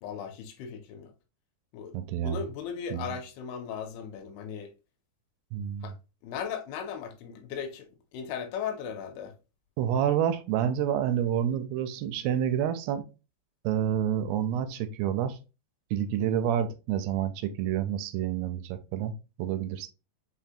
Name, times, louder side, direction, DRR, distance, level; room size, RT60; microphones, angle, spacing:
voice 1, 0.0-1.1 1.7-4.7 5.8-5.9 6.2-7.9 8.1-9.3, left 7 dB, 80° left, 2.5 m, -37 dB
voice 2, 1.9-2.4 2.9-3.1 5.5-5.9 9.8-13.1 13.6-15.4 15.9-19.9, right 10 dB, 85° right, 2.5 m, -28 dB
6.1 x 2.1 x 2.7 m
omnidirectional pair, 4.6 m